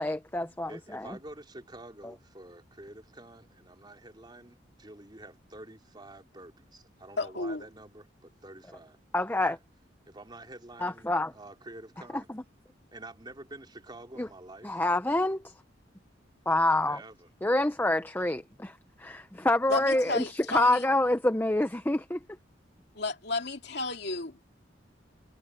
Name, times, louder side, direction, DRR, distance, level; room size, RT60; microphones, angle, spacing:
voice 1, 0.0-1.1 9.1-9.6 10.8-11.3 14.2-14.3 14.6-15.5 16.5-17.0 17.4-18.7 19.0-22.2, left 1 dB, 10° left, 0.8 m, -27 dB
voice 2, 0.7-9.0 9.4-9.6 10.1-12.3 12.9-14.8 16.8-17.3 19.7-19.9, right 2 dB, 25° right, 3.4 m, -48 dB
voice 3, 7.2-7.6 19.7-20.8 22.9-24.4, left 3 dB, 65° left, 2.7 m, -32 dB
head